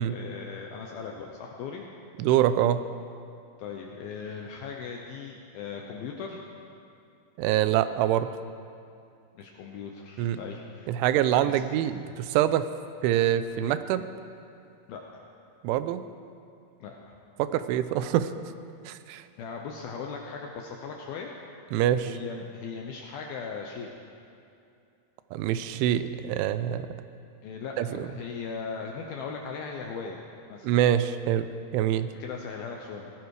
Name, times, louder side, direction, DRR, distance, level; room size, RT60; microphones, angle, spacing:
voice 1, 0.0-1.9 3.6-6.4 9.4-10.9 11.4-11.6 14.9-15.3 16.8-17.1 19.4-21.4 22.1-23.9 27.4-30.2 30.5-30.7 32.2-33.1, left 5 dB, 75° left, 1 dB, 2.2 m, -38 dB
voice 2, 2.2-2.8 7.4-8.3 10.2-10.4 10.9-12.7 13.0-14.1 15.6-16.0 17.4-18.3 18.9-19.2 21.7-22.2 25.3-26.9 27.8-28.1 30.6-31.5 31.7-32.1, right 11 dB, 90° right, 12 dB, 3.1 m, -25 dB
18.5 x 16.0 x 4.8 m, 2.5 s
omnidirectional pair, 5.4 m